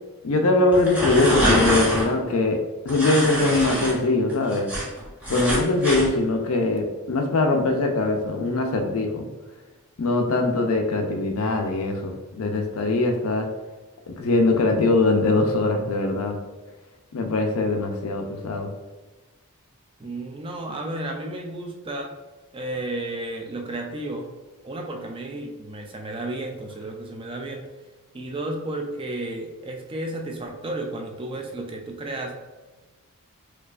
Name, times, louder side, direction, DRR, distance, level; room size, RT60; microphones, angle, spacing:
voice 1, 0.2-2.6 2.8-4.7 5.3-9.3 10.0-13.5 14.2-16.4 17.1-18.7, left 2 dB, 70° left, 3 dB, 0.5 m, -22 dB
sound 1, 0.7-2.1 2.9-3.9 4.3-6.1, right 1 dB, 5° right, 0.8 m, -24 dB
voice 2, 20.0-22.1 22.5-24.3 24.6-27.7 28.1-32.4, right 2 dB, 25° right, 2 dB, 0.3 m, -32 dB
4.5 x 2.4 x 2.4 m, 1.2 s
head